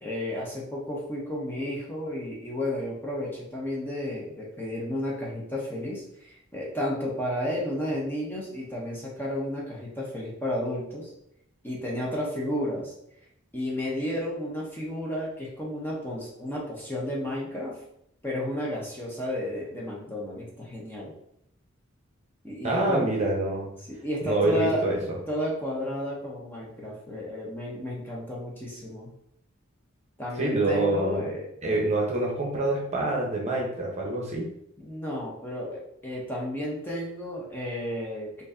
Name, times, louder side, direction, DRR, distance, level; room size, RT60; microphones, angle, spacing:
voice 1, 0.0-11.1 11.6-12.9 13.5-17.8 18.2-21.1 22.4-23.1 23.9-25.0 25.3-29.1 30.2-31.5 34.8-38.4, left 1 dB, 10° left, -5 dB, 0.8 m, -32 dB
voice 2, 22.6-23.7 24.2-25.0 30.4-31.3 31.6-34.5, right 2 dB, 35° right, -2 dB, 0.8 m, -26 dB
4.4 x 2.6 x 2.6 m, 0.75 s
head